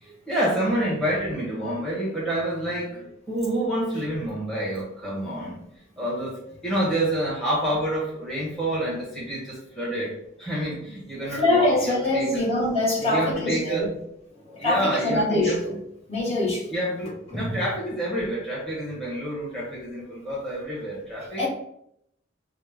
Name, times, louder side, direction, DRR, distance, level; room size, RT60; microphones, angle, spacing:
voice 1, 0.0-5.7 6.0-6.4 6.6-12.5 13.0-13.9 14.6-15.6 16.7-21.4, right 1 dB, ahead, 1.0 m, -28 dB
voice 2, 11.3-13.9 14.5-15.8 16.1-16.7 17.3-17.6 21.4-21.5, left 1 dB, 30° left, 1.3 m, -24 dB
5.1 x 2.0 x 3.5 m
head